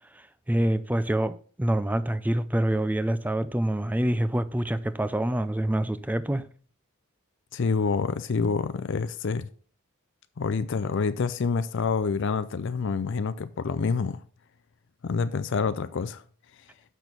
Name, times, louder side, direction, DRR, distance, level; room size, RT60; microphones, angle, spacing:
voice 1, 0.5-6.5, right 1 dB, 5° right, 0.4 m, -26 dB
voice 2, 7.5-9.5 10.4-14.2 15.0-16.2, left 5 dB, 55° left, 0.4 m, -27 dB
6.9 x 6.2 x 5.9 m
head